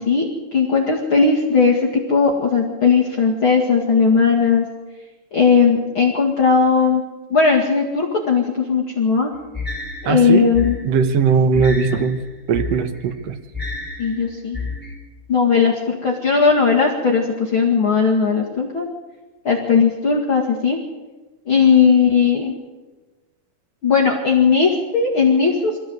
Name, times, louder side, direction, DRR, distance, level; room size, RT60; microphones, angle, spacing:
voice 1, 0.0-1.8 2.1-4.7 5.3-7.0 7.3-9.3 10.0-10.8 14.0-14.6 15.3-18.9 19.4-20.8 21.5-22.5 23.8-25.7, left 5 dB, 40° left, -2 dB, 2.2 m, -17 dB
sound 1, 9.5-14.9, left 3 dB, 5° left, 3.0 m, -31 dB
voice 2, 10.0-10.5 10.8-12.2 12.5-13.4, right 6 dB, 65° right, 7 dB, 1.6 m, -18 dB
23.5 x 15.5 x 7.9 m, 1.2 s
omnidirectional pair, 4.7 m